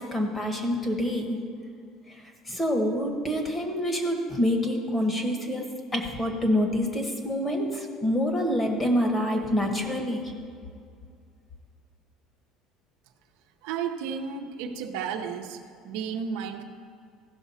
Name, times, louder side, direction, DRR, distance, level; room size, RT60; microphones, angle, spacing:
voice 1, 0.0-1.4 2.1-10.3, equal, 15° left, 3 dB, 1.2 m, -27 dB
voice 2, 13.6-15.6 15.8-16.6, right 7 dB, 85° right, 4 dB, 0.8 m, -32 dB
15.5 x 6.1 x 4.2 m, 2.3 s
cardioid pair, 160°, 0 cm